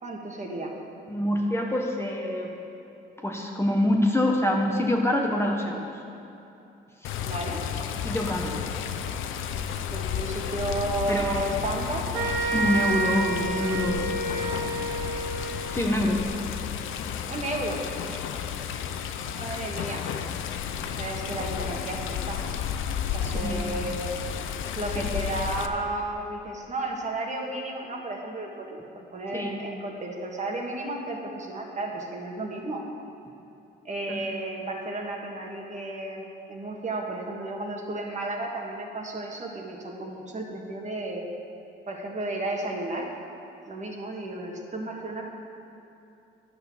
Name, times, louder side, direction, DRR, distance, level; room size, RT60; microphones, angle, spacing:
voice 1, 0.0-0.7 7.2-7.6 9.9-12.1 17.3-18.2 19.3-20.1 21.0-22.4 23.1-24.1 24.8-32.9 33.8-41.2 41.9-43.1 43.7-45.2, right 2 dB, 35° right, 0 dB, 1.7 m, -33 dB
voice 2, 1.1-2.5 3.2-5.8 7.0-7.1 8.0-8.5 11.1-11.4 12.5-14.1 15.7-16.2 23.2-23.6 24.9-25.1 29.3-29.5 34.1-34.2, left 1 dB, 10° left, 0 dB, 1.1 m, -26 dB
Water, 7.0-25.7, left 8 dB, 85° left, 0.6 m, -32 dB
sound 1, 12.1-15.8, right 3 dB, 80° right, 1.2 m, -29 dB
11.0 x 6.3 x 7.1 m, 2.8 s
cardioid pair, 90°, 20 cm